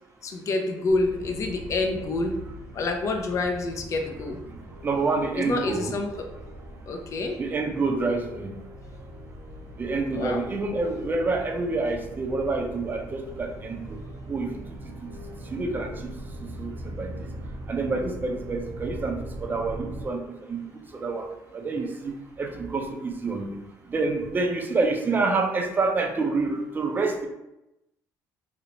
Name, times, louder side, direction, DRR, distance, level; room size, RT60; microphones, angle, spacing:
voice 1, 0.2-2.4 2.7-4.5 5.4-6.3 6.9-7.4 10.1-10.4, left 2 dB, 45° left, 3 dB, 0.4 m, -27 dB
sound 1, 0.9-20.1, right 1 dB, 80° right, 0.5 m, -41 dB
voice 2, 4.8-5.9 7.4-8.6 9.8-15.1 15.5-17.3 17.7-21.3 21.5-23.6 23.9-27.3, right 3 dB, 25° right, 4 dB, 0.4 m, -28 dB
2.6 x 2.1 x 2.8 m, 0.92 s
cardioid pair, 105°, 7 cm